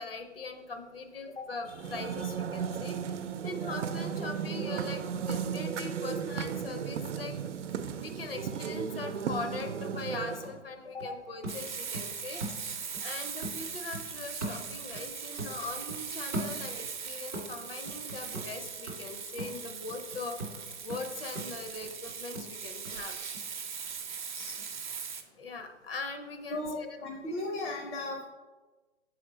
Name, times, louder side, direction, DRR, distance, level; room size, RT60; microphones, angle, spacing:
voice 1, 0.0-12.4 13.0-23.2 25.4-27.1, left 3 dB, 55° left, 6 dB, 0.7 m, -41 dB
sound 1, 1.7-10.6, right 7 dB, 85° right, 0.6 m, -35 dB
sound 2, 9.9-13.1 13.4-15.1 15.4-17.0 17.3-23.0 23.3-23.4, right 1 dB, 10° left, 0.4 m, -41 dB
Frying (food), 11.5-25.2, right 6 dB, 45° right, 0.5 m, -40 dB
voice 2, 26.5-28.2, left 2 dB, 75° left, 1 dB, 1.0 m, -36 dB
6.7 x 4.3 x 4.0 m, 1.3 s
hypercardioid pair, 175°, 35 cm